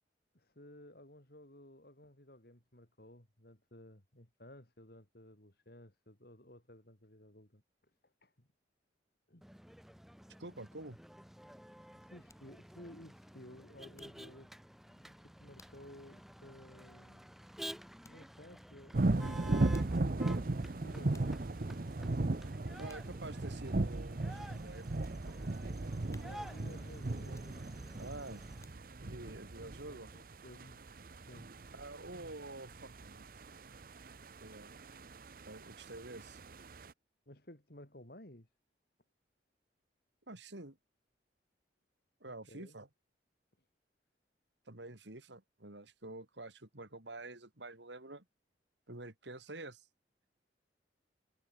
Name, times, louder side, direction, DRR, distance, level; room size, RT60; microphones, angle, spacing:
voice 1, 0.3-7.6 8.0-8.5 9.3-9.4 11.9-14.5 14.8-17.4 18.0-19.9 20.6-21.3 26.2-27.6 29.8-30.9 31.2-31.5 34.9-35.0 37.3-38.5 42.3-42.8, left 1 dB, 55° left, 3.6 m, -56 dB
Motor vehicle (road), 9.4-28.6, equal, ahead, 3.0 m, -52 dB
voice 2, 10.4-11.0 22.8-25.9 28.0-28.4 29.0-30.1 31.7-33.3 34.4-34.7 35.4-36.4 40.3-40.8 42.2-42.9 44.7-48.2 48.9-49.9, right 2 dB, 75° right, 3.2 m, -48 dB
sound 1, 12.2-14.4 14.7-15.0 15.6-15.9 16.4-16.5 18.0-18.3 19.5-20.1 20.7-20.8 21.1-21.5 22.0-22.3 22.9-23.2 23.7-23.8 24.4-25.2 25.7-25.8 26.1-26.7 27.2-27.9 28.3-29.1 29.6-29.7, left 3 dB, 15° left, 6.8 m, -65 dB
sound 2, 18.9-36.9, right 2 dB, 50° right, 0.8 m, -37 dB
head